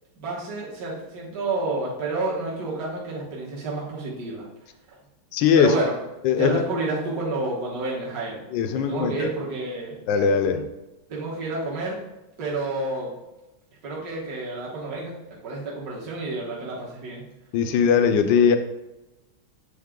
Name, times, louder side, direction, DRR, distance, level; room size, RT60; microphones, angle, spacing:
voice 1, 0.2-4.5 5.6-5.9 6.3-8.4 8.7-10.0 11.1-12.0 12.4-13.1 13.8-15.1 15.4-17.2, right 2 dB, 50° right, -6 dB, 1.7 m, -29 dB
voice 2, 5.3-5.8 6.2-6.6 8.5-9.3 10.1-10.7 17.5-18.6, left 7 dB, 70° left, 8 dB, 1.2 m, -20 dB
8.4 x 4.0 x 3.7 m, 1.0 s
omnidirectional pair, 2.3 m